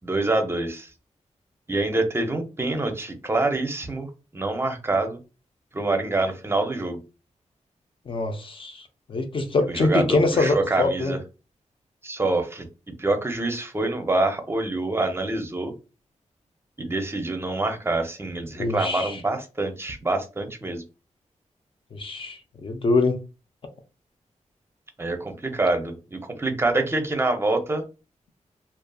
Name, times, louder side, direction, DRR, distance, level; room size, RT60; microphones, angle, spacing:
voice 1, 0.0-0.9 1.7-4.1 4.3-5.2 5.7-7.0 9.7-11.2 12.0-12.7 13.0-15.7 16.8-20.8 25.0-27.8, right 2 dB, 20° right, 0.5 m, -26 dB
voice 2, 8.1-11.1 18.6-19.2 21.9-23.2, left 3 dB, 45° left, 0.4 m, -24 dB
2.6 x 2.4 x 2.2 m
wide cardioid pair, 105°, 13 cm